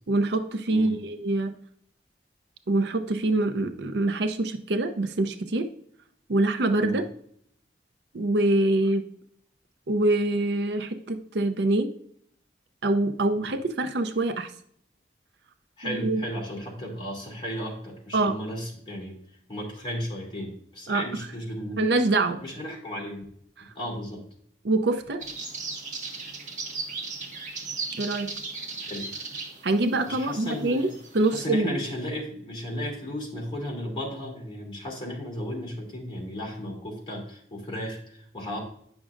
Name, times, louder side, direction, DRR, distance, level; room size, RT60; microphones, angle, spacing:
voice 1, 0.1-1.5 2.7-5.7 6.3-7.0 8.1-9.0 9.9-11.9 12.8-14.5 15.8-16.2 18.1-18.4 20.9-21.0 21.8-22.4 24.6-25.2 28.0-28.3 29.6-30.8 31.1-31.7, right 2 dB, 70° right, 8 dB, 0.6 m, -24 dB
voice 2, 15.8-19.2 19.5-21.8 22.4-23.2 23.7-24.2 28.8-29.1 30.1-30.9 31.3-38.6, equal, 30° left, -2 dB, 2.6 m, -34 dB
sound 1, 25.2-31.4, right 4 dB, 40° right, 1.6 m, -37 dB
9.4 x 6.1 x 2.5 m, 0.65 s
head